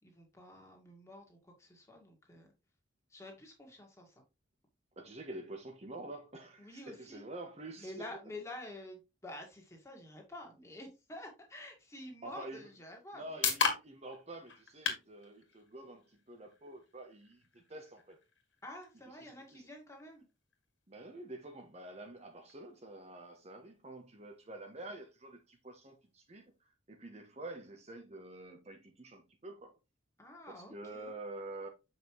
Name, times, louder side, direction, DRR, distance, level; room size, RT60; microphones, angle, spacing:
voice 1, 0.0-2.5 3.1-4.2 6.6-7.2 7.8-13.5 18.6-20.3 30.2-31.1, left 1 dB, 15° left, 1.9 m, -49 dB
voice 2, 5.0-7.9 12.2-12.7 13.1-18.2 19.2-19.7 20.9-29.8 30.5-31.7, right 2 dB, 35° right, 0.9 m, -48 dB
sound 1, 12.7-26.6, left 6 dB, 65° left, 1.9 m, -42 dB
7.2 x 5.5 x 3.1 m
head